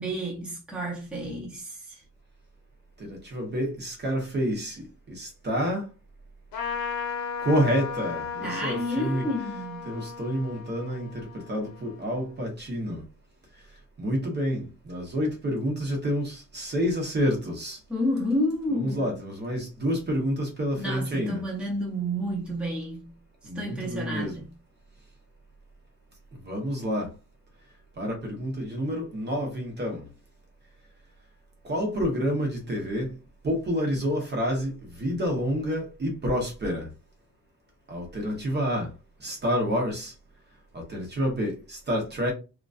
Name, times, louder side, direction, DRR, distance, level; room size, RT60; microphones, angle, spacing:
voice 1, 0.0-2.0 8.4-9.9 17.9-19.2 20.8-23.2 23.5-24.5, equal, 5° right, 0.8 m, -30 dB
voice 2, 3.0-5.8 7.4-9.3 9.9-13.0 14.0-17.8 18.7-21.5 23.4-24.4 26.4-27.1 28.0-30.1 31.6-33.1 33.4-36.9 37.9-38.9 39.2-40.1 40.7-42.3, equal, 30° right, 0.8 m, -28 dB
Trumpet, 6.5-12.3, left 6 dB, 80° left, 1.0 m, -35 dB
2.9 x 2.4 x 2.4 m
cardioid pair, 170°, 35 cm